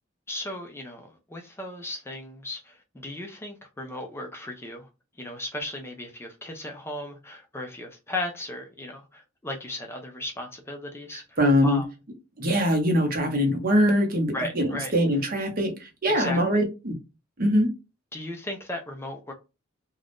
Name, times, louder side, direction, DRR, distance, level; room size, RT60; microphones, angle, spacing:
voice 1, 0.3-4.9 5.2-11.9 14.3-14.9 16.1-16.6 18.1-19.3, left 1 dB, 10° left, 3 dB, 0.4 m, -36 dB
voice 2, 11.1-11.8 12.4-16.9 17.4-17.7, equal, 45° right, 3 dB, 0.9 m, -23 dB
2.5 x 2.3 x 3.4 m, 0.28 s
head